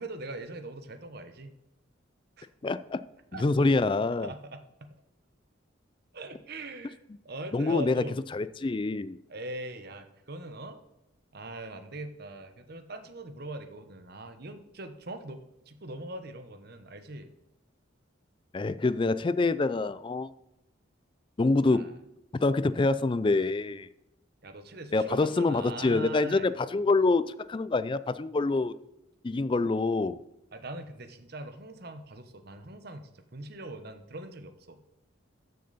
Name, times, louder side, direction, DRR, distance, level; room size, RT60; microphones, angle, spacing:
voice 1, 0.0-1.5 2.4-2.5 3.3-3.4 3.7-3.9 4.2-4.9 6.1-7.0 7.2-8.2 9.3-10.8 11.3-17.3 21.7-22.0 24.4-26.5 30.5-34.8, right 2 dB, 55° right, 1.0 m, -41 dB
voice 2, 2.6-3.0 3.3-4.3 7.5-8.0 8.3-9.2 18.5-20.3 21.4-21.9 22.4-23.9 24.9-28.7 29.2-30.2, left 3 dB, 25° left, 0.3 m, -26 dB
13.5 x 6.6 x 4.1 m
head